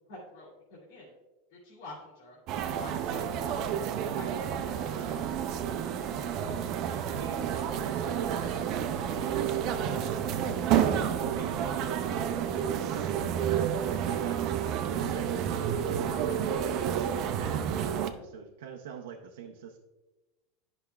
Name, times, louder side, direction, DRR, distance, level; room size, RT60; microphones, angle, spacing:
voice 1, 0.1-1.1 1.5-2.4 2.8-5.1, left 2 dB, 80° left, -5 dB, 2.2 m, -48 dB
sound 1, 2.5-18.1, right 9 dB, 40° right, 0.5 m, -30 dB
voice 2, 7.1-14.6 14.9-19.8, right 7 dB, 90° right, 2 dB, 0.6 m, -44 dB
sound 2, 7.5-7.8 8.2-8.3 10.0-10.3 12.0-12.1 14.1-14.4 16.1-16.4, left 2 dB, 20° left, 1.7 m, -55 dB
11.0 x 5.8 x 2.3 m, 1.1 s
supercardioid pair, 160°, 0 cm